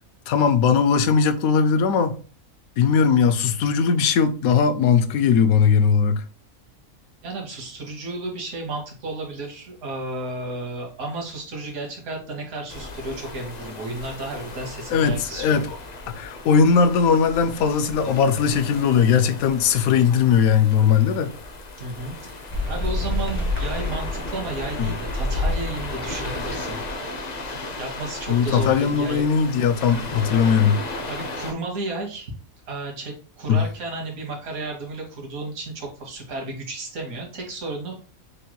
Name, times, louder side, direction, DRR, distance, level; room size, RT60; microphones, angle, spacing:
voice 1, 0.3-2.2 2.8-6.2 14.9-15.6 16.1-21.3 24.8-24.9 28.3-30.8 33.5-33.6, left 6 dB, 80° left, 1.0 m, -19 dB
voice 2, 7.2-15.6 21.8-26.8 27.8-29.3 31.1-32.3 32.7-38.0, right 2 dB, 85° right, 1.8 m, -33 dB
sound 1, 12.7-31.5, left 2 dB, 50° left, 0.5 m, -36 dB
sound 2, 22.5-27.0, left 2 dB, 10° left, 0.8 m, -28 dB
6.4 x 3.0 x 2.3 m
omnidirectional pair, 1.5 m